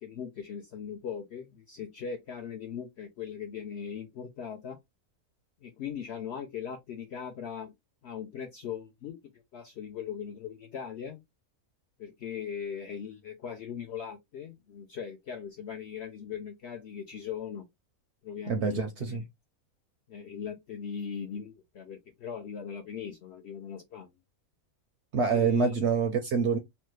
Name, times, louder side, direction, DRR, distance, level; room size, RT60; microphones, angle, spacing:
voice 1, 0.0-4.8 5.6-7.7 8.0-9.2 9.5-11.2 12.0-17.7 18.2-19.2 20.1-24.1 25.3-25.7, left 7 dB, 70° left, 0.6 m, -39 dB
voice 2, 18.5-19.2 25.1-26.6, right 5 dB, 65° right, 0.7 m, -26 dB
3.1 x 2.1 x 3.1 m
omnidirectional pair, 1.6 m